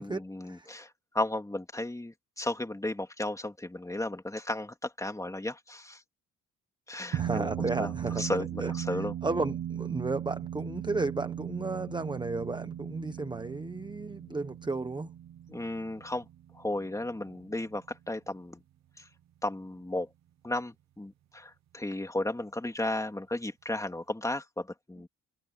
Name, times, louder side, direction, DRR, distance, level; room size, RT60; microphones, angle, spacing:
voice 1, 0.0-6.0 6.9-9.1 15.5-16.3 16.5-18.6 19.0-19.1 19.4-20.1 20.4-25.1, left 1 dB, 10° left, 3.2 m, -34 dB
sound 1, 7.1-17.8, right 10 dB, 60° right, 1.0 m, -37 dB
voice 2, 7.2-8.3 8.6-15.1, right 3 dB, 15° right, 1.3 m, -33 dB
cardioid pair, 90°, 30 cm